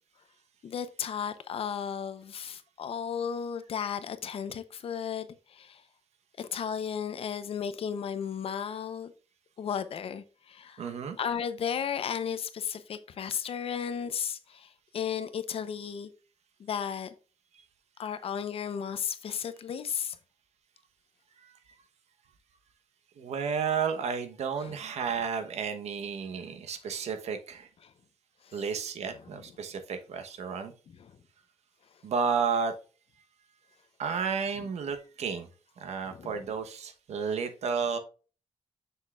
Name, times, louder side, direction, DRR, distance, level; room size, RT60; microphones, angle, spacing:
voice 1, 0.6-5.8 6.4-9.1 9.6-16.1 16.6-17.1 18.0-20.2 24.6-24.7 27.8-27.9 28.4-28.6 30.9-31.1 36.1-36.4, left 7 dB, 60° left, 0.8 m, -34 dB
voice 2, 10.8-11.2 21.4-21.5 23.2-27.7 28.5-30.7 32.0-32.7 34.0-35.5 35.8-38.0, right 6 dB, 90° right, 1.1 m, -32 dB
7.3 x 6.6 x 2.4 m
wide cardioid pair, 165°, 11 cm